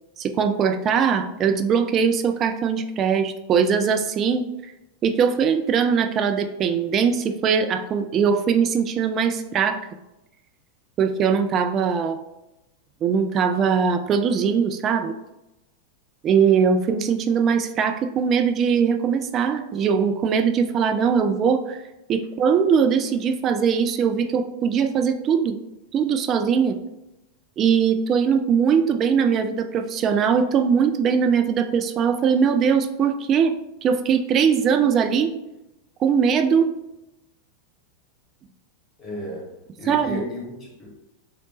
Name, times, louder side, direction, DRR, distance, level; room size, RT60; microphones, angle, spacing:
voice 1, 0.2-4.4 5.0-9.8 11.0-12.2 13.0-15.2 16.2-21.8 22.1-25.6 25.9-26.8 27.6-35.3 36.0-36.7 39.9-40.2, right 6 dB, 30° right, 7 dB, 0.3 m, -21 dB
voice 2, 39.0-39.5 39.8-40.9, left 1 dB, 25° left, -1 dB, 1.1 m, -34 dB
3.0 x 2.0 x 4.0 m, 0.92 s
figure-of-eight pair, 90°, 0 cm